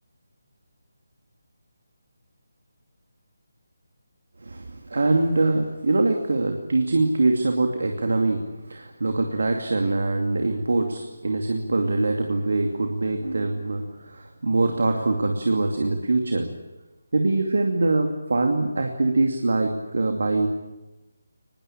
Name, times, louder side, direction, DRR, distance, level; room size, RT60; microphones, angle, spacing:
voice 1, 4.4-8.4 8.7-16.5 17.1-20.5, right 2 dB, 55° right, 4 dB, 2.6 m, -23 dB
24.0 x 21.0 x 8.8 m, 1.1 s
figure-of-eight pair, 150°, 0 cm